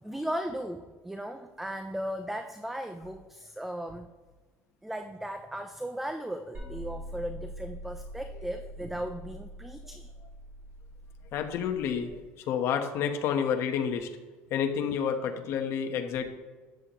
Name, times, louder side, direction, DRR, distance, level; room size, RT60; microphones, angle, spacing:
voice 1, 0.0-4.1 4.8-10.1, right 1 dB, 5° right, 8 dB, 0.5 m, -37 dB
sound 1, 6.5-12.1, equal, 30° right, 3.1 m, -44 dB
voice 2, 11.3-12.2 12.5-14.1 14.5-16.2, left 7 dB, 55° left, 5 dB, 1.1 m, -29 dB
13.0 x 8.5 x 3.1 m, 1.3 s
cardioid pair, 135°, 5 cm